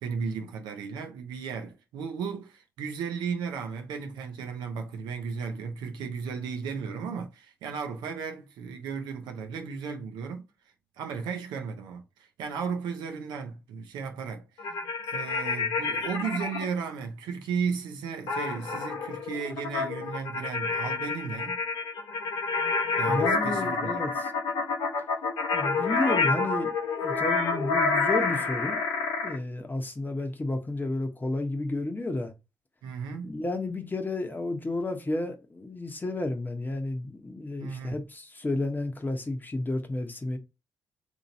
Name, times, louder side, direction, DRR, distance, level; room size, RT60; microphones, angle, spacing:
voice 1, 0.0-10.4 11.0-14.4 15.0-21.6 23.0-24.0 32.8-33.3 37.6-38.0, right 6 dB, 75° right, 0.6 m, -35 dB
sound 1, 14.6-16.7 18.3-29.4, left 4 dB, 75° left, 0.8 m, -28 dB
voice 2, 23.1-24.3 25.5-26.7 27.0-28.8 29.2-32.3 33.2-40.4, left 2 dB, 25° left, 0.9 m, -31 dB
3.0 x 2.7 x 4.0 m
hypercardioid pair, 45°, 7 cm